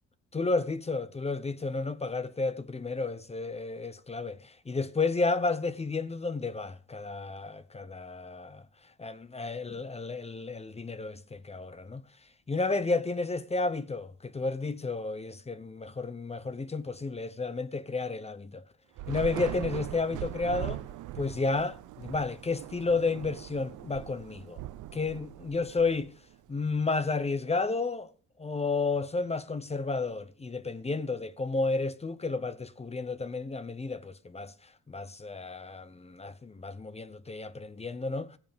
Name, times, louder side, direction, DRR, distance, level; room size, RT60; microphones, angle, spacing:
voice 1, 0.3-8.6 9.0-12.0 12.5-18.6 19.1-20.8 21.1-24.6 24.9-26.1 26.5-28.1 28.4-34.5 34.9-38.4, left 3 dB, 20° left, 0.8 m, -32 dB
Thunder / Rain, 19.0-26.5, right 14 dB, 85° right, 0.8 m, -40 dB
15.0 x 7.3 x 5.2 m
cardioid pair, 90°, 30 cm